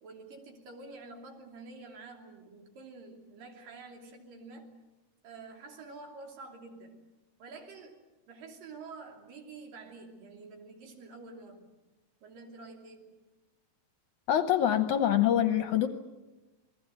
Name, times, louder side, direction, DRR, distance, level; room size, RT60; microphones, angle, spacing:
voice 1, 0.0-4.8 5.2-7.1 7.4-8.0 8.3-11.7 12.2-13.2, right 3 dB, 65° right, 3 dB, 4.5 m, -48 dB
voice 2, 14.3-15.9, left 11 dB, 70° left, 9 dB, 2.1 m, -25 dB
27.0 x 20.5 x 7.9 m, 1.1 s
omnidirectional pair, 4.2 m